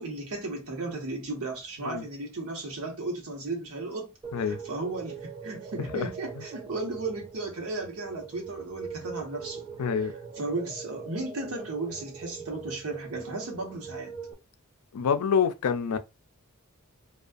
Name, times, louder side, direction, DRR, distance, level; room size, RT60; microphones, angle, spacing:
voice 1, 0.0-4.1 4.4-9.6 9.9-10.1 10.4-14.1, right 2 dB, 80° right, 1.0 m, -35 dB
sound 1, 4.2-14.3, right 6 dB, 20° right, 0.3 m, -42 dB
voice 2, 9.8-10.1 14.9-16.0, left 6 dB, 80° left, 0.4 m, -26 dB
2.4 x 2.3 x 2.5 m
head